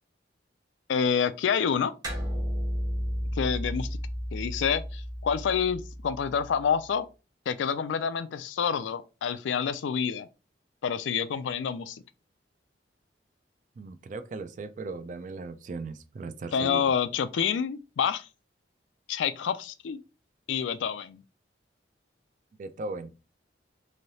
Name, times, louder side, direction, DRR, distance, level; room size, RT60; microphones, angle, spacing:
voice 1, 0.9-1.9 3.4-3.9 4.3-7.1 7.5-10.3 10.8-12.0 16.5-18.3 19.1-20.0 20.5-21.2, left 7 dB, 90° left, 0.3 m, -28 dB
sound 1, 2.0-6.8, equal, 20° right, 0.7 m, -33 dB
voice 2, 13.8-16.8 22.6-23.1, right 3 dB, 45° right, 0.3 m, -37 dB
3.2 x 2.7 x 2.7 m
head